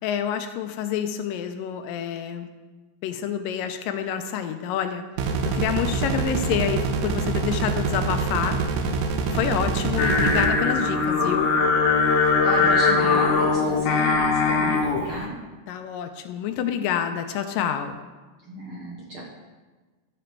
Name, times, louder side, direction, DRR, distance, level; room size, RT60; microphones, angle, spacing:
voice 1, 0.0-2.5 3.0-5.0 5.5-8.6 9.3-11.5 15.7-18.0, left 9 dB, 85° left, 8 dB, 2.3 m, -28 dB
sound 1, 5.2-10.5, right 4 dB, 85° right, 2.5 m, -25 dB
Singing, 10.0-15.1, left 4 dB, 65° left, 2.1 m, -21 dB
voice 2, 12.4-15.3 18.4-19.2, right 1 dB, 55° right, -4 dB, 1.6 m, -32 dB
14.0 x 5.1 x 4.6 m, 1.3 s
omnidirectional pair, 4.0 m